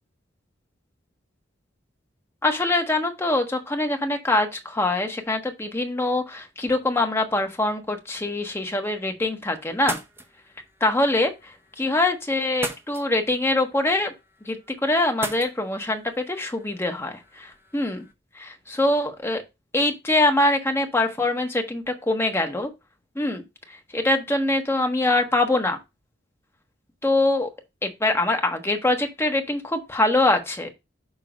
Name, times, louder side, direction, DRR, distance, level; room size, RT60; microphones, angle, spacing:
voice 1, 2.4-10.0 10.8-14.1 14.4-18.1 18.3-19.4 19.7-22.7 23.1-25.8 27.0-27.5 27.8-30.7, left 2 dB, 15° left, 1.2 m, -24 dB
sound 1, 9.7-18.1, right 2 dB, 15° right, 0.9 m, -40 dB
6.5 x 3.8 x 5.1 m
head